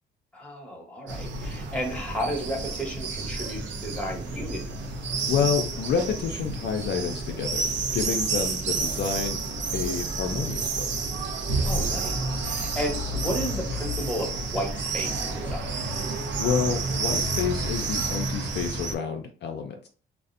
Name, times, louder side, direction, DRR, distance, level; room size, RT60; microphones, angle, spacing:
voice 1, 0.3-4.6 11.6-15.7, equal, 5° left, -1 dB, 0.8 m, -33 dB
sound 1, 1.1-19.0, right 3 dB, 65° right, 0.5 m, -30 dB
voice 2, 5.3-7.7 7.9-9.4 9.7-10.9 16.4-19.9, left 7 dB, 60° left, 3 dB, 0.4 m, -28 dB
2.4 x 2.0 x 2.5 m, 0.42 s
cardioid pair, 90°, 20 cm